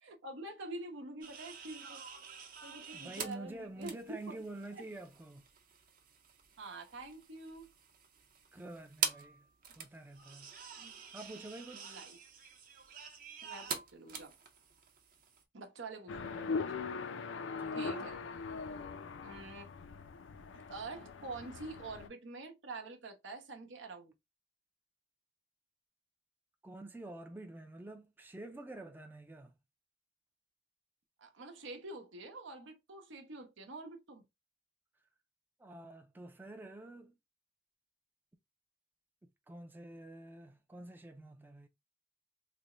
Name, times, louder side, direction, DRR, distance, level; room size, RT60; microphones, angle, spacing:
voice 1, 0.0-2.0 2.6-4.4 6.6-7.7 10.8-11.0 11.7-12.2 13.4-14.3 15.5-16.7 17.7-18.2 19.2-19.7 20.7-24.1 31.2-34.2, right 2 dB, 85° right, 0.8 m, -46 dB
sound 1, 1.2-15.4, right 7 dB, 45° right, 0.6 m, -45 dB
voice 2, 2.9-5.4 8.5-9.4 9.8-10.5 11.1-12.0 17.6-18.1 26.6-29.5 35.6-37.2 39.5-41.7, right 2 dB, 10° right, 0.3 m, -48 dB
sound 2, 16.1-22.1, left 4 dB, 85° left, 0.4 m, -41 dB
3.3 x 2.1 x 3.7 m
head